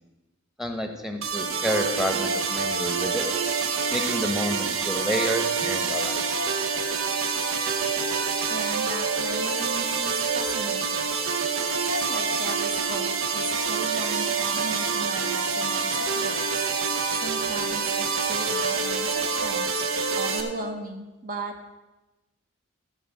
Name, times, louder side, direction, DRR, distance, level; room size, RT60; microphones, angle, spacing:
voice 1, 0.6-3.2 3.9-6.2, equal, ahead, 5 dB, 1.1 m, -29 dB
sound 1, 1.2-20.4, right 5 dB, 65° right, 1.1 m, -26 dB
voice 2, 8.5-11.1 11.8-16.7 17.1-21.8, right 3 dB, 40° right, 4 dB, 1.0 m, -37 dB
14.0 x 4.8 x 7.6 m, 1.1 s
head